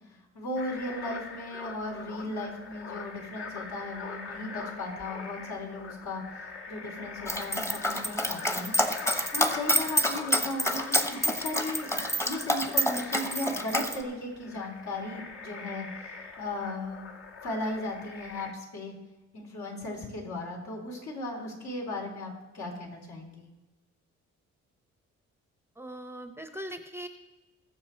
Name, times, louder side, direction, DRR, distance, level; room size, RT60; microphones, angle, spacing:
voice 1, 0.3-8.7 9.0-11.9 12.2-15.9 16.4-17.1 17.4-18.9 19.3-23.4, left 2 dB, 65° left, -1 dB, 3.9 m, -36 dB
sound 1, 0.6-18.5, left 4 dB, 45° left, 1.5 m, -43 dB
Dog, 7.3-14.0, equal, 10° left, 1.1 m, -27 dB
voice 2, 25.8-27.1, equal, 10° right, 8 dB, 0.8 m, -40 dB
21.0 x 7.0 x 4.5 m, 1.1 s
cardioid pair, 90°, 30 cm